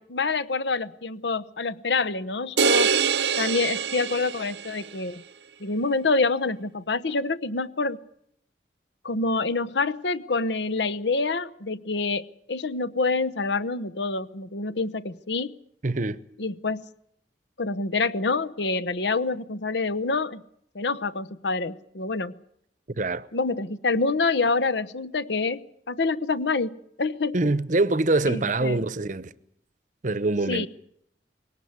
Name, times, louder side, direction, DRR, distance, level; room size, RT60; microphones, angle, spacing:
voice 1, 0.0-2.9 3.4-5.2 5.6-8.0 9.0-12.2 12.5-15.5 16.4-16.8 17.6-20.4 20.7-22.3 23.3-27.4 28.3-28.8 30.5-30.7, left 3 dB, 75° left, 1.0 m, -27 dB
sound 1, 2.6-4.9, right 6 dB, 75° right, 0.8 m, -24 dB
voice 2, 15.8-16.2 23.0-23.3 27.3-29.3 30.0-30.7, right 2 dB, 45° right, 0.8 m, -24 dB
20.5 x 18.0 x 9.5 m
head